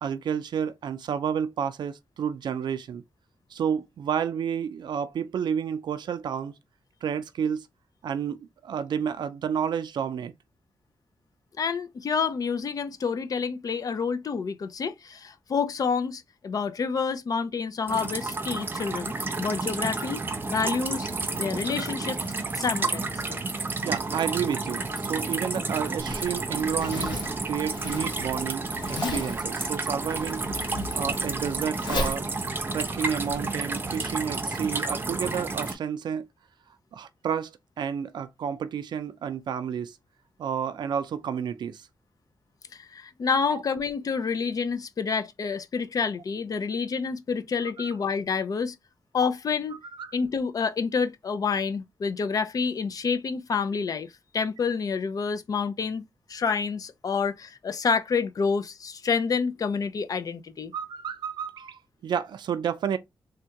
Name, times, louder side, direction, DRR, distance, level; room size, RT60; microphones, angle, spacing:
voice 1, 0.0-3.0 3.5-6.5 7.0-7.7 8.0-10.3 23.8-32.3 32.7-36.3 36.9-40.0 40.4-41.9 43.5-43.6 47.8-47.9 49.9-50.1 60.7-63.0, right 7 dB, 85° right, 0.4 m, -30 dB
voice 2, 11.6-23.4 42.7-48.8 49.1-49.8 50.1-54.1 54.3-60.7, left 5 dB, 55° left, 0.4 m, -28 dB
sound 1, 17.9-35.8, right 3 dB, 30° right, 0.6 m, -31 dB
Zipper (clothing), 26.0-33.4, left 3 dB, 90° left, 0.9 m, -36 dB
3.5 x 2.2 x 2.8 m
wide cardioid pair, 120°, 7 cm